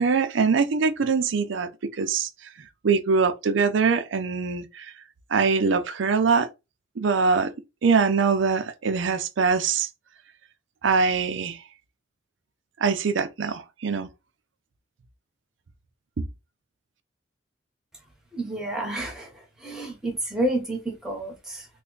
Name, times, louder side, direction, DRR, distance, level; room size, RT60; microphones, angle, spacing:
voice 1, 0.0-2.3 2.8-4.9 5.3-6.5 7.0-7.5 7.8-9.9 10.8-11.6 12.8-14.1 16.2-16.3, right 5 dB, 80° right, 0.5 m, -23 dB
voice 2, 18.3-21.7, right 1 dB, 5° right, 1.0 m, -30 dB
3.3 x 2.2 x 3.8 m
head